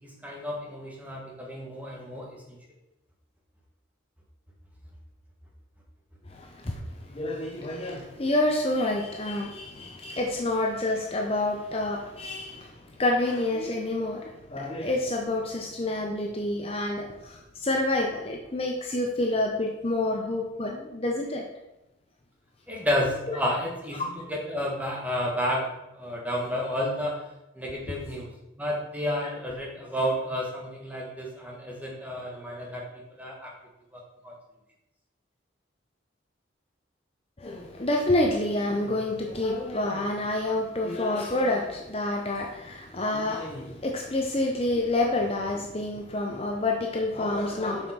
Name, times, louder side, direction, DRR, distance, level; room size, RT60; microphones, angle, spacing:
voice 1, 0.0-2.6 22.7-25.6 25.9-27.2 27.5-28.3 28.6-32.8 33.1-33.5 33.9-34.3, equal, 10° right, -2 dB, 1.7 m, -31 dB
voice 2, 6.3-21.5 23.9-24.0 37.4-47.9, left 2 dB, 30° left, 0 dB, 0.8 m, -28 dB
7.6 x 5.3 x 5.8 m, 0.94 s
head